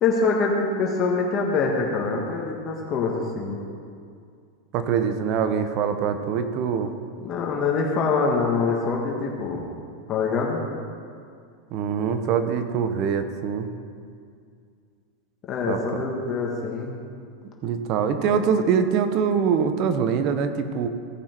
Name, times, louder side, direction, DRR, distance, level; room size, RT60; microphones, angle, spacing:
voice 1, 0.0-3.6 7.2-9.7 10.1-10.6 15.5-17.0, left 4 dB, 35° left, -1 dB, 1.4 m, -24 dB
voice 2, 4.7-6.9 11.7-13.7 15.7-15.8 17.6-20.9, right 7 dB, 50° right, 9 dB, 0.9 m, -23 dB
16.5 x 5.9 x 4.5 m, 2.3 s
hypercardioid pair, 110°, 0 cm